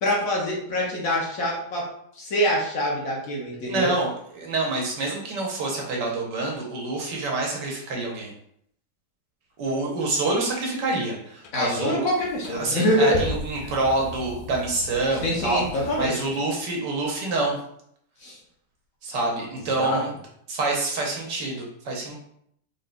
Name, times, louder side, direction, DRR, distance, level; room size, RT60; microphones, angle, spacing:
voice 1, 0.0-1.9 2.2-3.9 11.5-13.2 15.2-16.1 18.2-18.4 19.8-20.0, equal, 60° left, -2 dB, 1.1 m, -25 dB
voice 2, 3.7-8.3 9.6-12.1 12.5-17.6 19.0-20.1 20.5-22.2, right 2 dB, 75° right, -1 dB, 1.5 m, -27 dB
sound 1, 11.4-11.6 12.2-16.5, left 3 dB, 80° left, 0.6 m, -37 dB
3.9 x 3.6 x 2.3 m, 0.70 s
omnidirectional pair, 1.9 m